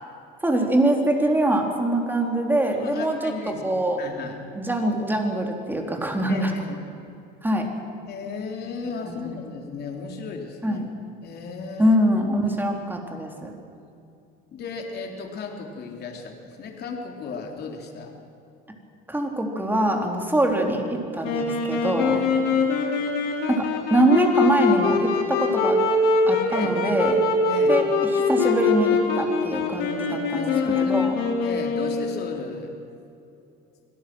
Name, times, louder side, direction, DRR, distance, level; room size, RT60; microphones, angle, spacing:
voice 1, 0.4-3.3 3.6-4.0 4.6-6.6 7.4-7.7 9.1-9.4 10.6-10.9 11.8-13.5 19.1-22.2 23.5-25.8 26.3-27.2 27.7-27.9 28.3-30.5 30.8-31.1, right 1 dB, 10° right, 2 dB, 3.6 m, -23 dB
voice 2, 2.7-3.6 4.0-4.4 6.3-6.8 8.1-10.8 11.2-12.0 12.4-12.5 14.5-18.2 22.1-22.3 26.5-26.7 27.4-27.8 30.3-30.9 31.4-32.7, left 5 dB, 50° left, 2 dB, 3.7 m, -35 dB
Wind instrument woodwind instrument, 21.2-32.3, left 4 dB, 70° left, 4.1 m, -23 dB
26.0 x 18.0 x 6.3 m, 2.7 s
supercardioid pair, 105°, 21 cm